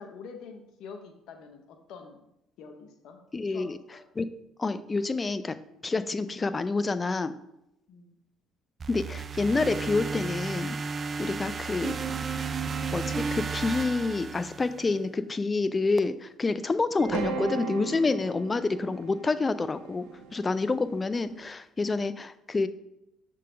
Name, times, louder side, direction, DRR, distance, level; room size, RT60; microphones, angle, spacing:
voice 1, 0.0-2.2 2.6-3.2 3.5-4.0 7.9-8.2, left 5 dB, 70° left, 4 dB, 0.8 m, -46 dB
voice 2, 3.3-3.8 4.2-4.3 4.6-5.6 5.8-7.3 8.9-10.8 11.2-12.0 12.9-20.0 20.3-22.7, left 3 dB, 25° left, 13 dB, 0.4 m, -28 dB
sound 1, 8.8-15.0, right 5 dB, 40° right, 0.3 m, -33 dB
sound 2, 17.0-21.2, right 4 dB, 90° right, 0.8 m, -36 dB
6.6 x 3.8 x 5.0 m, 0.83 s
supercardioid pair, 80°, 0 cm